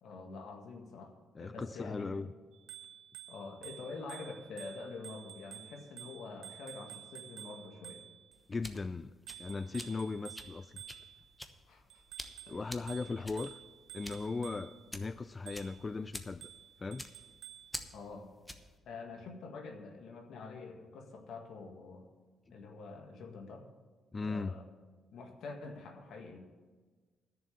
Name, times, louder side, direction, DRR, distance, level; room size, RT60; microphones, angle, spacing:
voice 1, 0.0-2.1 3.3-8.0 11.7-12.0 12.5-12.6 13.1-13.2 14.3-14.5 17.9-18.3 18.9-22.1 22.5-23.7 24.2-24.6 25.1-26.4, left 4 dB, 75° left, 4 dB, 1.8 m, -46 dB
voice 2, 1.4-2.3 8.5-9.1 9.4-10.8 12.5-13.6 13.9-16.5 16.8-17.1 24.1-24.6, left 3 dB, 30° left, 13 dB, 0.3 m, -38 dB
Bicycle bell, 2.5-8.4 9.3-11.4 11.9-14.9 15.5-15.9 16.4-17.8, right 11 dB, 90° right, 0.8 m, -51 dB
sound 1, 8.3-18.8, left 1 dB, 10° left, 1.0 m, -49 dB
10.5 x 6.8 x 8.6 m, 1.4 s
cardioid pair, 90°, 0 cm